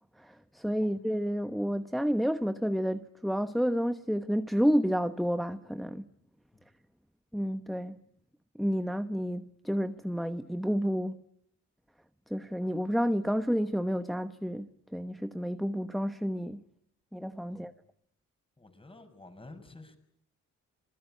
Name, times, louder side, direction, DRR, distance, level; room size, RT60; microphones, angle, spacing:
voice 1, 0.2-6.1 7.3-8.0 8.6-11.2 12.3-16.6 17.1-17.7, equal, ahead, 1.0 m, -30 dB
voice 2, 18.6-20.0, left 2 dB, 20° left, 6.3 m, -51 dB
27.0 x 22.0 x 9.0 m
cardioid pair, 90°, 30 cm